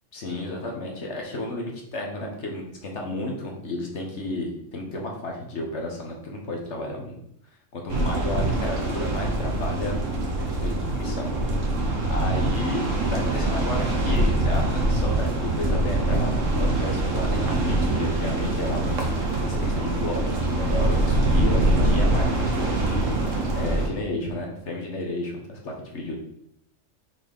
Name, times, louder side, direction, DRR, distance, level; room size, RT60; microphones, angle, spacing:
voice 1, 0.1-7.2 7.7-10.0 10.4-11.4 12.1-23.1 23.6-26.2, left 2 dB, 65° left, 0 dB, 1.5 m, -32 dB
sound 1, 7.9-23.9, right 2 dB, 80° right, 1.6 m, -24 dB
6.3 x 4.5 x 5.3 m, 0.74 s
omnidirectional pair, 1.3 m